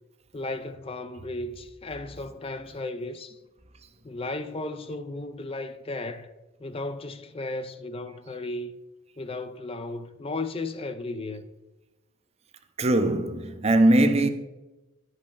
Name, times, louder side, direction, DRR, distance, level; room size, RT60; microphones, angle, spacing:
voice 1, 0.3-3.4 4.0-6.3 6.6-8.8 9.2-11.5, left 2 dB, 25° left, 0.5 m, -35 dB
voice 2, 12.8-14.3, right 1 dB, 30° right, 0.7 m, -20 dB
11.5 x 5.3 x 5.5 m
head